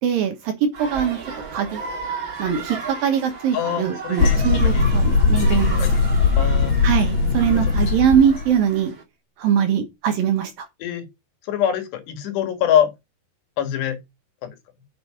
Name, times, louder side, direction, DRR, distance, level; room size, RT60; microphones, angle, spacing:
voice 1, 0.0-1.2 1.5-1.8 2.4-5.8 6.8-8.9 9.4-10.7, right 8 dB, 65° right, 2.8 m, -21 dB
sound 1, 0.7-9.0, right 4 dB, 35° right, 2.3 m, -35 dB
voice 2, 3.5-5.0 5.8-6.1 6.4-6.7 7.5-7.6 10.8-11.1 11.5-12.9 13.6-14.0 14.4-14.6, left 9 dB, 85° left, 4.0 m, -24 dB
sound 2, 4.2-8.5, left 4 dB, 50° left, 2.9 m, -19 dB
8.1 x 6.2 x 5.0 m
omnidirectional pair, 4.7 m